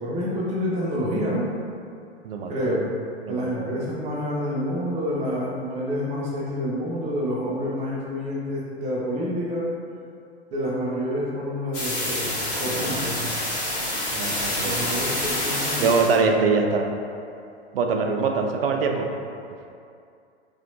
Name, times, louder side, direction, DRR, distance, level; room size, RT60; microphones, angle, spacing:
voice 1, 0.0-1.4 2.5-2.8 3.3-9.6 10.5-13.3 14.6-16.3, equal, 20° right, -5 dB, 0.7 m, -28 dB
voice 2, 2.2-2.7 3.2-3.8 12.7-13.4 14.1-14.8 15.8-16.9 17.7-19.1, right 4 dB, 60° right, 3 dB, 0.5 m, -24 dB
sound 1, 11.7-16.2, left 1 dB, 40° left, 1.1 m, -27 dB
4.1 x 2.6 x 2.6 m, 2.5 s
figure-of-eight pair, 100°, 34 cm